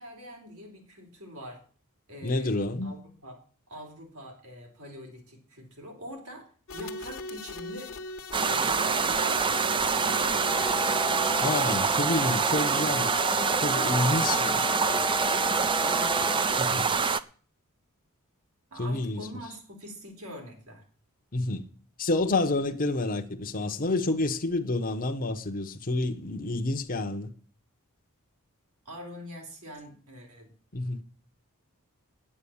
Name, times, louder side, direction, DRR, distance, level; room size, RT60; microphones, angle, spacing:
voice 1, 0.0-1.6 2.1-3.4 3.7-7.9 8.4-10.5 15.3-17.0 18.7-20.8 28.9-30.5, equal, 75° right, 3.7 m, -44 dB
voice 2, 2.2-3.0 11.4-13.1 13.6-14.6 16.5-16.9 18.7-19.5 21.3-21.6 22.0-27.3 30.7-31.0, left 2 dB, 40° left, 0.9 m, -29 dB
sound 1, 6.7-12.1, left 1 dB, 65° left, 1.2 m, -40 dB
sound 2, 8.3-17.2, right 5 dB, 20° right, 0.5 m, -26 dB
sound 3, 10.5-16.4, left 1 dB, 10° left, 0.9 m, -35 dB
9.9 x 8.8 x 7.1 m
head